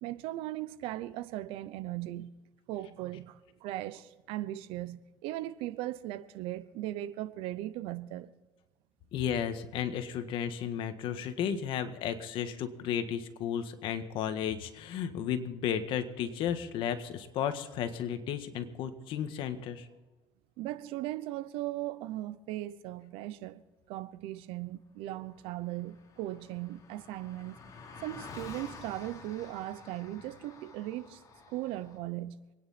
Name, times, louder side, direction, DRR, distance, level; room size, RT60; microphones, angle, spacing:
voice 1, 0.0-2.3 2.7-8.3 20.6-23.6 23.9-27.6 28.0-31.2 31.5-32.4, right 15 dB, 80° right, 0.8 m, -38 dB
voice 2, 9.1-19.9, left 9 dB, 65° left, 1.6 m, -33 dB
Car passing by, 24.9-25.0 25.1-32.0, left 4 dB, 40° left, 3.0 m, -50 dB
25.5 x 9.9 x 4.3 m
cardioid pair, 110°, 9 cm